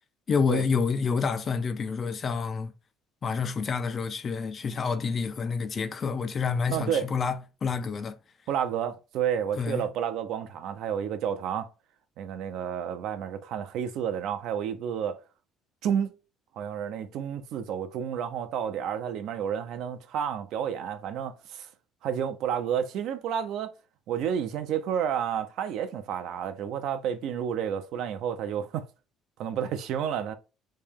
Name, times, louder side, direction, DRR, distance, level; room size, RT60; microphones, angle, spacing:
voice 1, 0.3-2.7 3.2-8.2 9.6-9.9, left 5 dB, 25° left, 0.3 m, -28 dB
voice 2, 6.7-7.1 8.5-11.7 12.2-15.2 15.8-16.1 16.6-21.7 22.0-23.7 24.1-28.9 29.4-30.4, right 8 dB, 55° right, 0.5 m, -30 dB
3.3 x 2.8 x 3.5 m
cardioid pair, 175°, 0 cm